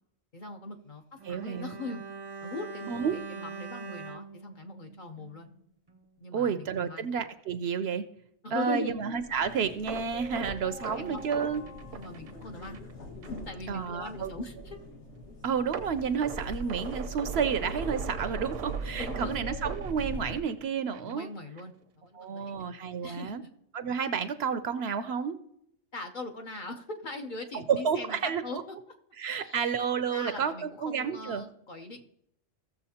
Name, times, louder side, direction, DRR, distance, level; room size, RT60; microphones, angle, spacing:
voice 1, 0.3-1.0 1.3-2.0 2.4-5.5 6.2-7.1 8.4-8.9 10.8-11.2 11.9-12.8 13.3-14.8 19.0-19.3 21.1-22.6 23.0-23.4 25.9-28.8 29.4-29.8 30.1-32.0, left 2 dB, 45° left, 4 dB, 0.9 m, -40 dB
Bowed string instrument, 1.2-5.6 5.9-6.0, right 5 dB, 25° right, 0.6 m, -43 dB
voice 2, 1.2-1.8 2.9-3.2 6.3-8.1 8.5-11.6 13.7-14.3 15.4-21.3 22.1-23.4 23.7-25.4 27.5-28.6 29.2-30.5 30.8-31.4, right 6 dB, 65° right, 11 dB, 0.8 m, -30 dB
sound 1, 9.2-20.4, right 1 dB, 70° left, 1.9 m, -41 dB
sound 2, 9.9-12.9 13.2-13.4 13.9-14.0 15.7-20.6 20.9-21.1 21.6-21.7, right 6 dB, 80° right, 1.1 m, -40 dB
15.5 x 7.0 x 2.8 m, 0.72 s
omnidirectional pair, 1.3 m